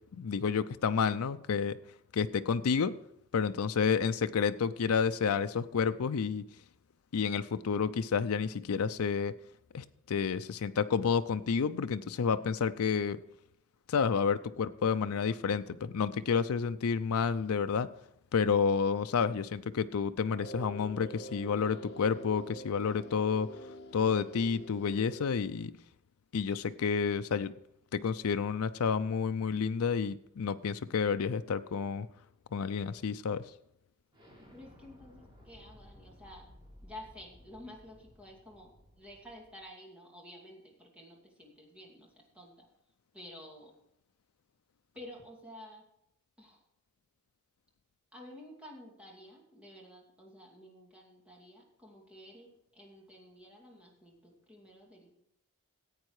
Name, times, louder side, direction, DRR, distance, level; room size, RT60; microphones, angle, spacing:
voice 1, 0.1-1.8 2.1-2.9 3.3-6.4 7.1-9.3 9.7-13.2 13.9-17.9 18.3-23.5 23.9-25.7 26.3-27.5 27.9-32.1 32.5-33.4, left 6 dB, 70° left, 10 dB, 0.5 m, -30 dB
sound 1, 20.4-25.4, equal, 50° left, 1.4 m, -46 dB
Explosion, 34.1-39.6, left 1 dB, 20° right, 3.7 m, -57 dB
voice 2, 34.5-36.5 36.8-42.7 43.1-43.7 44.9-45.8 46.4-46.6 48.1-55.1, left 1 dB, 5° right, -2 dB, 2.5 m, -51 dB
15.0 x 8.5 x 4.8 m, 0.80 s
head